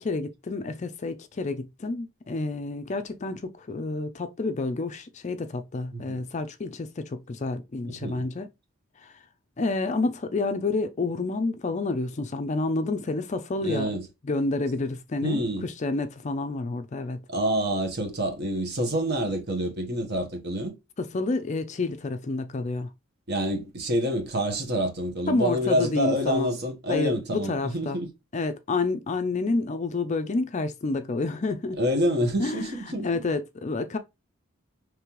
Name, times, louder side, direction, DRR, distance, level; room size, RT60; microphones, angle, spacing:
voice 1, 0.0-8.5 9.0-9.1 9.6-13.9 14.2-17.2 21.0-22.9 25.3-26.5 26.9-28.0 28.3-31.8 32.4-32.7 33.0-34.0, left 3 dB, 35° left, 0.4 m, -29 dB
voice 2, 7.8-8.3 13.6-14.0 15.2-15.7 17.3-20.7 23.3-28.1 31.8-33.2, equal, 50° right, 1.2 m, -27 dB
5.3 x 3.2 x 3.0 m
head